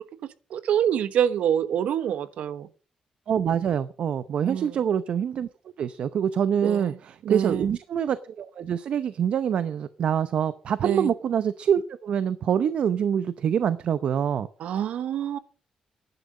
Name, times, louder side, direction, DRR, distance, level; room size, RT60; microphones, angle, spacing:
voice 1, 0.5-2.7 4.4-4.7 6.6-7.0 7.2-7.6 10.8-11.1 14.6-15.4, right 9 dB, 90° right, 1.1 m, -26 dB
voice 2, 3.3-5.5 5.8-14.5, right 8 dB, 60° right, 0.7 m, -25 dB
11.5 x 11.0 x 6.5 m
wide cardioid pair, 170°, 2 cm